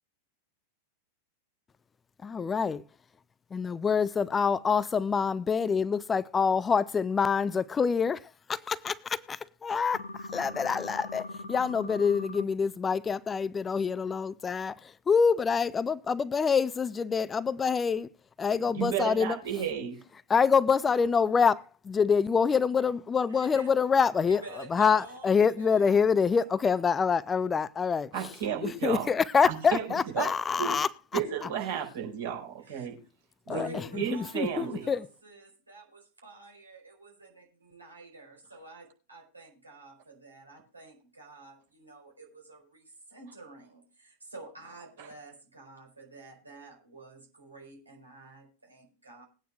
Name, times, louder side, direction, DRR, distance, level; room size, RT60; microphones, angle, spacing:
voice 1, 2.2-2.8 3.5-18.1 18.4-19.6 20.3-31.5 33.5-35.1, left 6 dB, 20° left, 0.4 m, -26 dB
sound 1, 9.9-12.4, left 2 dB, 65° left, 1.0 m, -41 dB
voice 2, 18.7-20.0 28.1-29.1 29.7-29.8 30.2-30.3 30.6-30.7 31.1-33.0 33.5-34.9, right 8 dB, 60° right, 4.7 m, -32 dB
voice 3, 23.3-23.7 24.3-26.5 32.6-32.9 33.5-49.2, right 2 dB, 80° right, 4.6 m, -49 dB
21.0 x 9.3 x 2.4 m
figure-of-eight pair, 90°, 0 cm